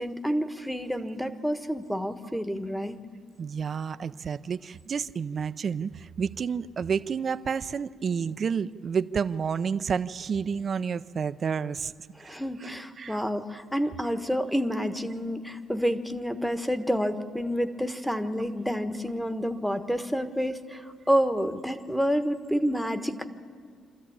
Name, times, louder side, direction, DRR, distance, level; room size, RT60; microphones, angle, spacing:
voice 1, 0.0-3.0 12.2-23.3, equal, 5° left, 10 dB, 1.2 m, -29 dB
voice 2, 3.4-11.9 12.2-12.7 13.0-13.2, right 6 dB, 50° right, 14 dB, 0.6 m, -30 dB
26.0 x 13.5 x 8.6 m, 2.1 s
cardioid pair, 90°, 0 cm